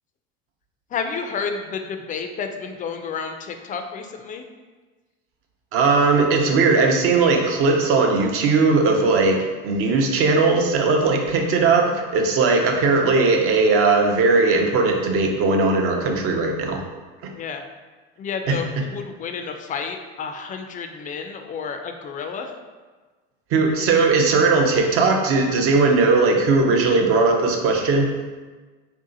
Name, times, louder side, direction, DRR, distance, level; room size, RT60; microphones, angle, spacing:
voice 1, 0.9-4.5 17.4-17.6 18.2-22.5, left 5 dB, 25° left, 5 dB, 0.4 m, -31 dB
voice 2, 5.7-9.4 9.6-16.8 18.5-18.8 23.5-28.1, right 3 dB, 50° right, 2 dB, 0.7 m, -18 dB
3.3 x 2.7 x 3.8 m, 1.3 s
supercardioid pair, 100°, 29 cm